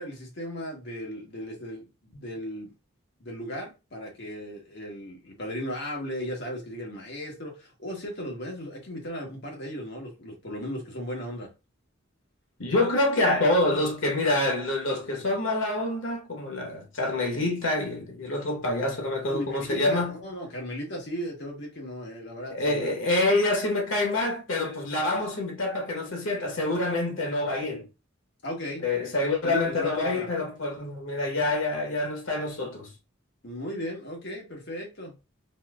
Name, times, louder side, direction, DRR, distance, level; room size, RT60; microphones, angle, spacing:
voice 1, 0.0-2.7 3.2-11.5 19.3-22.8 28.4-28.9 29.4-30.3 33.4-35.2, equal, 60° left, 1.3 m, -36 dB
voice 2, 12.6-20.2 22.5-27.9 28.8-32.9, left 2 dB, 85° left, 1.1 m, -26 dB
4.1 x 2.5 x 2.4 m
head